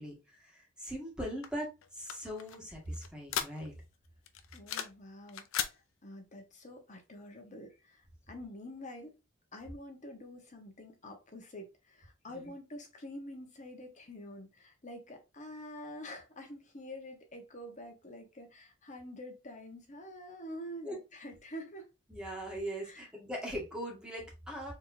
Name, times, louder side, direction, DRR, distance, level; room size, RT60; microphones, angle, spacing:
voice 1, 0.0-3.7 12.3-12.5 20.8-21.0 22.1-24.7, equal, 5° right, 1.7 m, -40 dB
sound 1, 1.4-3.9 4.3-5.0 5.3-5.8, left 9 dB, 85° left, 0.6 m, -37 dB
voice 2, 4.5-9.1 9.5-21.9 22.8-23.0, left 1 dB, 40° left, 1.3 m, -47 dB
4.4 x 3.4 x 2.7 m
head